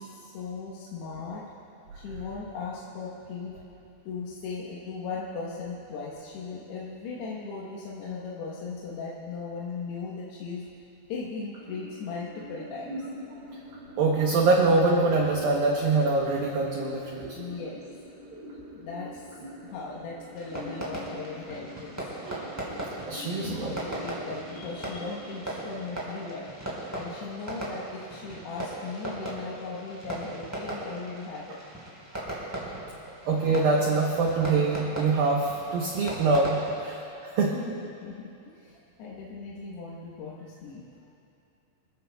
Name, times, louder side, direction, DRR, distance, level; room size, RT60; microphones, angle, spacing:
voice 1, 0.0-1.4 1.9-3.5 4.0-10.6 11.1-13.0 17.4-18.0 18.7-22.0 23.2-26.5 26.9-31.6 37.4-41.2, left 4 dB, 70° left, -5 dB, 2.8 m, -38 dB
sound 1, 11.5-27.5, equal, 40° right, 4.5 m, -44 dB
voice 2, 14.0-17.4 22.2-22.5 23.1-23.7 32.1-32.3 33.3-37.5, right 3 dB, 90° right, -1 dB, 2.0 m, -24 dB
Fireworks, 20.3-36.8, right 1 dB, 5° right, 3.2 m, -38 dB
28.0 x 14.5 x 2.3 m, 2.7 s
omnidirectional pair, 5.7 m